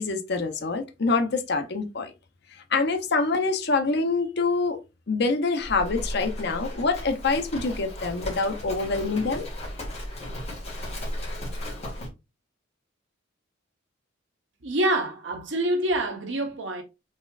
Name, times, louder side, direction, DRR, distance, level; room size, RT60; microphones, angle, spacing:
voice 1, 0.0-2.1 2.7-4.8 5.1-9.5, left 3 dB, 55° left, 0.7 m, -25 dB
Livestock farm animals working animals, 5.6-12.1, equal, 35° left, 1.8 m, -35 dB
voice 2, 14.6-16.8, right 1 dB, 65° right, 0.9 m, -26 dB
4.2 x 3.5 x 2.4 m
head